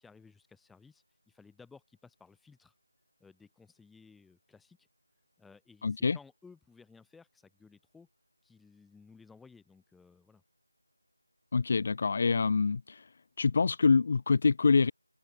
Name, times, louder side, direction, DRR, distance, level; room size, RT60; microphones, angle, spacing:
voice 1, 0.0-2.7 3.2-4.9 5.4-8.1 8.4-10.4, left 4 dB, ahead, 3.5 m, -57 dB
voice 2, 5.8-6.2 11.5-13.1 13.4-14.9, left 4 dB, 30° left, 0.8 m, -26 dB
figure-of-eight pair, 165°, 0 cm